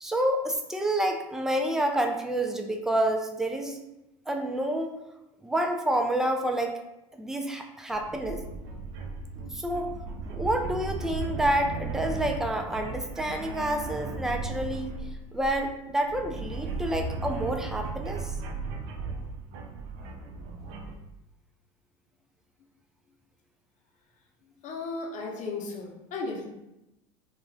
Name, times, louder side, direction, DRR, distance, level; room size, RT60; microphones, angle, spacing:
voice 1, 0.0-3.8 4.3-4.9 5.4-6.7 7.1-8.4 9.5-9.9 10.3-14.9 15.3-18.4, right 1 dB, 5° right, 4 dB, 0.3 m, -28 dB
sound 1, 7.9-20.9, right 4 dB, 65° right, 0.5 m, -36 dB
voice 2, 24.6-26.5, left 3 dB, 50° left, 0 dB, 0.7 m, -35 dB
2.4 x 2.1 x 3.3 m, 0.92 s
hypercardioid pair, 90°, 17 cm